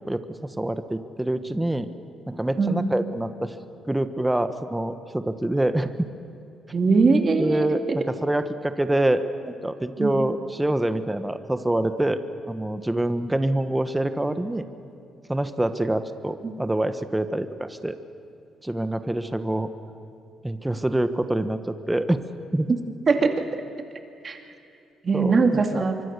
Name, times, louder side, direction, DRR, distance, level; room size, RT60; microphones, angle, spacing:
voice 1, 0.6-1.9 2.3-3.5 3.9-6.1 7.4-12.2 12.5-14.6 15.3-17.9 18.6-19.7 20.4-21.6 21.9-22.2 22.5-22.7 25.1-25.9, right 1 dB, 10° right, 9 dB, 1.2 m, -25 dB
voice 2, 6.7-7.7 10.0-10.2 16.4-16.5 23.1-23.4 24.2-24.4 25.0-25.9, right 4 dB, 40° right, 4 dB, 2.4 m, -21 dB
24.5 x 24.5 x 6.8 m, 2.7 s
cardioid pair, 90°, 0 cm